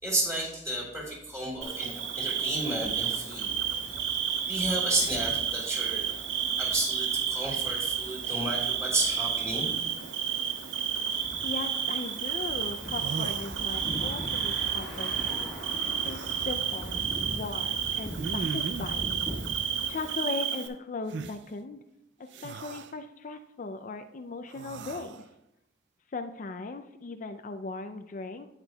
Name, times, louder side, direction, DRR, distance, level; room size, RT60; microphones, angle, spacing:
voice 1, 0.0-3.5 4.5-6.0 6.6-9.7, right 1 dB, 20° right, -4 dB, 3.3 m, -32 dB
Bird / Cricket, 1.6-20.7, right 8 dB, 90° right, 0.9 m, -31 dB
sound 1, 2.8-20.1, equal, ahead, 1.7 m, -43 dB
voice 2, 11.4-15.5 16.0-19.2 19.9-21.8 22.2-25.2 26.1-28.5, left 3 dB, 45° left, 8 dB, 0.4 m, -38 dB
sound 2, 12.6-12.7 12.9-14.2 16.0-16.6 18.2-19.0 21.1-21.4 22.3-22.9 24.5-25.3, right 4 dB, 70° right, 0.4 m, -38 dB
17.5 x 5.9 x 2.3 m, 0.84 s
head